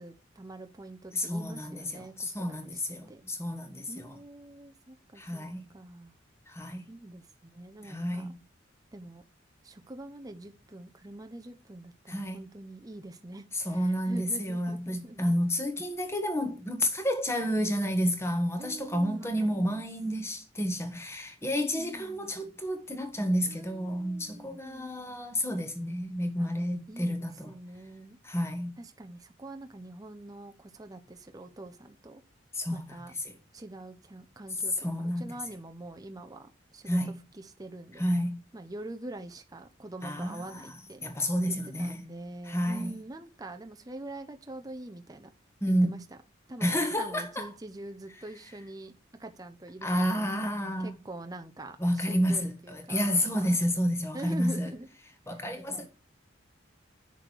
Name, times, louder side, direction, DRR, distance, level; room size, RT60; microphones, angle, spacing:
voice 1, 0.0-3.2 3.9-5.4 5.7-6.1 6.9-8.3 8.9-9.3 9.6-15.3 18.6-19.8 21.8-22.4 23.5-24.9 26.4-26.5 26.9-28.2 28.8-32.2 32.7-33.1 33.5-38.0 38.5-41.0 41.5-45.3 45.7-46.0 46.5-46.7 47.0-48.9 49.2-50.3 50.8-53.6 54.1-54.9 55.3-55.9, right 1 dB, 20° right, 0.7 m, -45 dB
voice 2, 1.1-4.1 5.2-5.7 6.5-6.8 7.9-8.3 12.1-12.4 13.5-27.5 28.2-28.8 32.5-33.0 33.2-33.3 34.8-35.3 36.9-37.2 38.0-38.4 40.0-40.7 41.0-42.0 42.4-43.0 45.6-45.9 46.6-47.5 49.8-50.9 51.8-54.7 55.3-55.9, equal, 15° left, 1.5 m, -30 dB
8.1 x 6.5 x 4.6 m
head